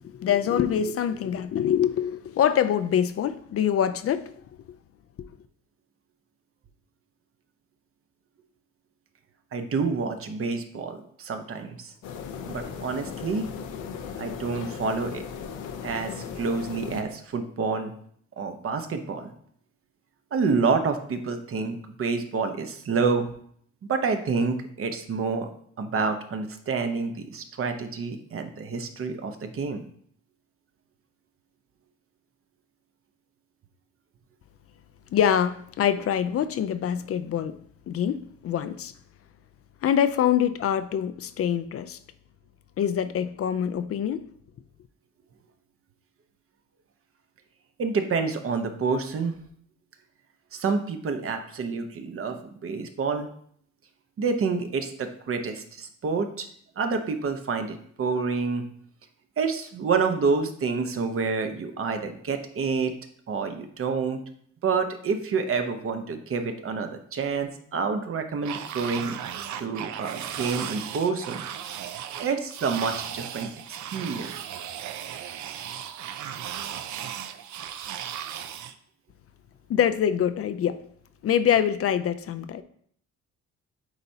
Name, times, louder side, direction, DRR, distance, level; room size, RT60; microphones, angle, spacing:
voice 1, 0.0-4.4 5.2-5.3 35.1-37.6 37.9-38.9 39.8-42.0 42.8-44.2 79.7-80.8 81.2-82.6, left 9 dB, 50° left, 0.4 m, -25 dB
voice 2, 9.5-11.9 12.5-13.5 14.2-15.2 15.8-17.9 18.4-19.3 20.3-23.3 23.9-25.5 25.8-29.8 47.8-49.3 50.5-53.3 54.2-56.5 56.8-58.6 59.4-62.9 63.3-64.2 64.6-71.5 72.2-73.5 73.9-74.3, right 4 dB, 45° right, 0.8 m, -28 dB
sound 1, 12.0-17.0, left 6 dB, 90° left, 0.7 m, -37 dB
sound 2, 68.4-78.8, right 9 dB, 70° right, 0.5 m, -36 dB
8.0 x 4.3 x 2.8 m
cardioid pair, 90°, 30 cm